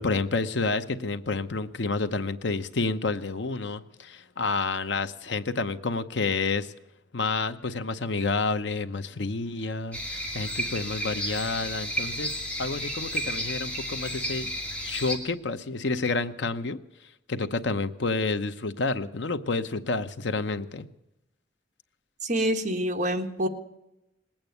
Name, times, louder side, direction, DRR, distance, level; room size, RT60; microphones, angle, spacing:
voice 1, 0.0-6.7 7.1-12.3 12.6-14.5 14.8-16.8 17.3-20.9, left 3 dB, 70° left, 11 dB, 0.8 m, -29 dB
sound 1, 9.9-15.2, equal, 5° left, 2.6 m, -32 dB
voice 2, 22.2-23.5, right 1 dB, 40° right, 4 dB, 1.5 m, -26 dB
20.0 x 8.9 x 8.0 m, 0.91 s
head